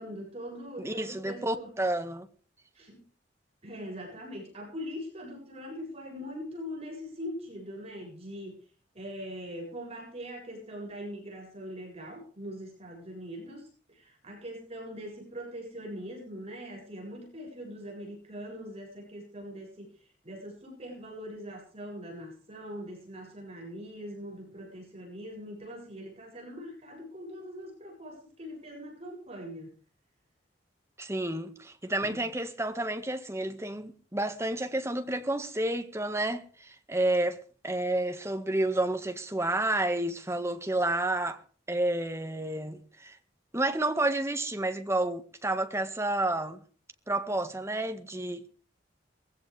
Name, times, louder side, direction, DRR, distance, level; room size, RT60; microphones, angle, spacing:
voice 1, 0.0-1.7 2.7-3.0 3.6-8.6 8.9-19.9 20.2-29.7 32.1-32.2, equal, 35° right, 7.5 m, -42 dB
voice 2, 0.8-2.3 31.0-41.4 41.7-43.2 43.5-46.6 47.1-48.5, right 1 dB, 15° right, 1.7 m, -30 dB
21.0 x 16.0 x 3.5 m
head